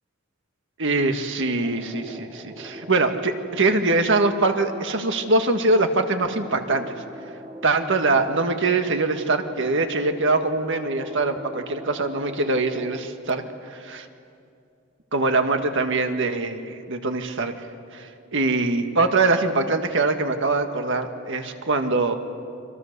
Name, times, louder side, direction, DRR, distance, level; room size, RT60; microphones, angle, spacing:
voice 1, 0.8-7.0 7.6-13.4 13.7-14.0 15.1-17.5 17.9-22.2, right 3 dB, 60° right, 6 dB, 1.7 m, -23 dB
sound 1, 1.6-13.1, equal, 30° right, 3.3 m, -43 dB
29.5 x 25.0 x 6.8 m, 2.5 s
head